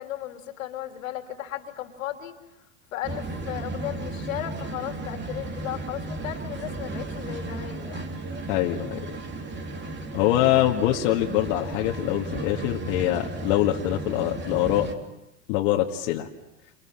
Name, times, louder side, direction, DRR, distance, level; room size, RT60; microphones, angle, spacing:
voice 1, 0.0-2.4 2.9-8.1, left 12 dB, 85° left, 5 dB, 3.1 m, -35 dB
sound 1, 3.0-14.9, right 2 dB, 25° right, 3.3 m, -34 dB
voice 2, 8.5-9.0 10.1-14.9 15.5-16.3, left 13 dB, 65° left, -1 dB, 2.1 m, -24 dB
29.5 x 27.5 x 5.9 m, 0.90 s
hypercardioid pair, 105°, 39 cm